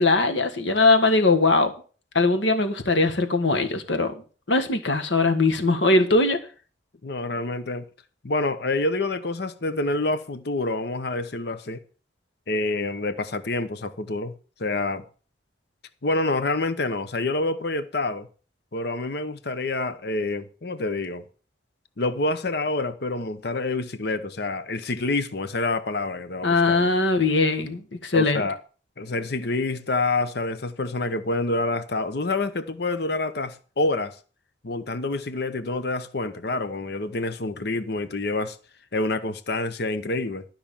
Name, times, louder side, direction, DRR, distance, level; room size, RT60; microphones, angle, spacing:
voice 1, 0.0-1.7 2.2-4.1 4.5-6.4 26.4-28.4, left 3 dB, 75° left, 1.7 m, -20 dB
voice 2, 7.0-7.8 8.2-11.8 12.5-14.3 14.6-15.0 16.0-18.3 18.7-21.2 22.0-26.9 28.1-28.6 29.0-34.2 34.6-38.6 38.9-40.4, left 2 dB, 60° left, 0.9 m, -27 dB
12.5 x 5.8 x 7.2 m
head